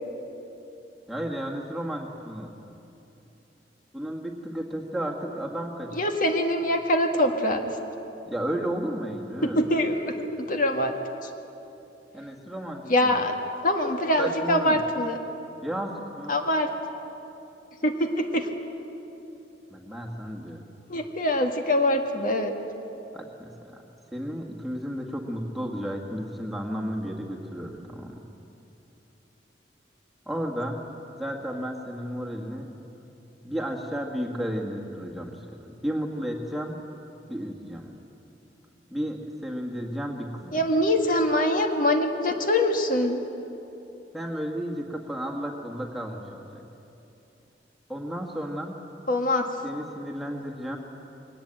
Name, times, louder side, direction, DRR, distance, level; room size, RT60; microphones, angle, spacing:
voice 1, 1.1-2.5 3.9-5.9 8.2-9.6 12.1-13.2 14.2-14.8 15.6-16.4 19.7-20.7 23.1-23.8 24.1-28.2 30.3-30.8 31.2-32.7 33.4-36.8 37.3-37.9 38.9-40.6 44.1-46.6 47.9-48.8 49.6-50.8, equal, ahead, -2 dB, 1.8 m, -33 dB
voice 2, 6.0-7.8 9.4-11.0 11.2-11.3 12.9-13.4 13.6-15.2 16.3-16.7 17.8-18.5 20.9-22.5 40.5-43.2 49.1-49.5, left 1 dB, 50° left, 4 dB, 1.8 m, -24 dB
22.5 x 19.0 x 9.0 m, 2.9 s
head